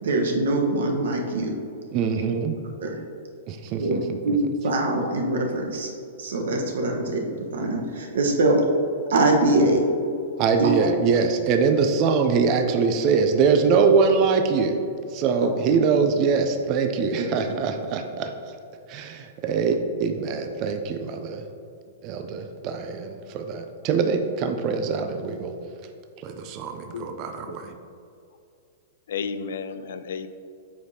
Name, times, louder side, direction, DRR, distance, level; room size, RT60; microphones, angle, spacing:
voice 1, 0.0-1.5 2.8-2.9 3.8-4.0 4.2-5.9 6.2-8.6 9.1-9.8 10.6-10.7 17.2-17.3, right 2 dB, 75° right, 2 dB, 1.1 m, -23 dB
voice 2, 1.9-2.6 3.5-4.4 10.4-18.6 18.9-21.4 22.0-25.5 25.8-25.9 26.2-27.8, right 5 dB, 30° right, 6 dB, 0.4 m, -23 dB
voice 3, 29.1-30.3, left 6 dB, 70° left, 11 dB, 0.4 m, -32 dB
7.8 x 5.1 x 2.8 m, 2.6 s
hypercardioid pair, 165°, 0 cm